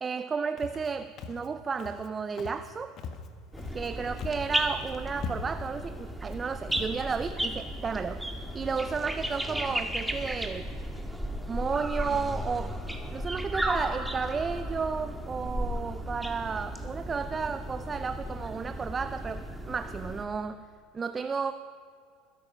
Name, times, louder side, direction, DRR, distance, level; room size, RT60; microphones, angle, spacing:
voice 1, 0.0-3.0 3.7-8.2 8.5-10.6 11.5-12.7 13.1-20.7 20.9-21.5, right 5 dB, 25° right, 11 dB, 0.5 m, -32 dB
Walk footsteps, 0.6-0.9 1.2-1.5 1.8-2.1 2.4-2.7 3.0-3.9 4.2-4.5 4.8-4.9 5.2-5.7 6.2-6.4 6.7-7.0, left 5 dB, 50° left, 1.5 m, -40 dB
sound 1, 3.5-20.2, equal, 5° right, 1.9 m, -35 dB
21.5 x 10.0 x 6.1 m, 2.2 s
hypercardioid pair, 85°, 0 cm